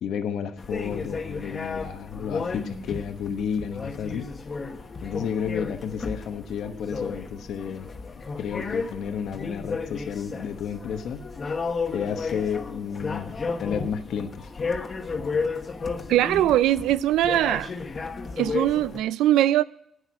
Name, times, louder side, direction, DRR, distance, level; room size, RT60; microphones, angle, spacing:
voice 1, 0.0-4.3 5.0-7.9 8.4-11.2 11.9-13.3 13.6-14.5, left 7 dB, 75° left, 1.1 m, -31 dB
sound 1, 0.6-19.0, left 4 dB, 40° left, 1.3 m, -33 dB
voice 2, 16.1-17.7 18.4-19.6, right 13 dB, 90° right, 0.4 m, -21 dB
11.5 x 9.4 x 6.2 m
cardioid pair, 90°, 0 cm